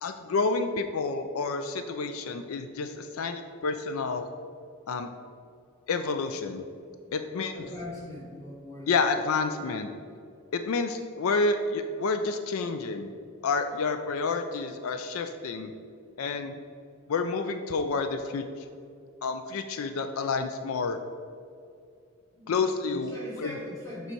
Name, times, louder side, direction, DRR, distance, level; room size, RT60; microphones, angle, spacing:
voice 1, 0.0-4.3 4.9-5.1 5.9-6.6 7.1-7.6 8.9-9.9 10.5-13.1 13.4-15.7 16.2-16.5 17.1-18.4 19.2-21.0 22.5-23.1 23.4-23.5, left 4 dB, 80° left, 8 dB, 0.4 m, -29 dB
voice 2, 7.5-9.0 22.3-22.6 22.9-24.1, left 2 dB, 15° left, -5 dB, 1.6 m, -40 dB
6.7 x 4.8 x 4.5 m, 2.4 s
head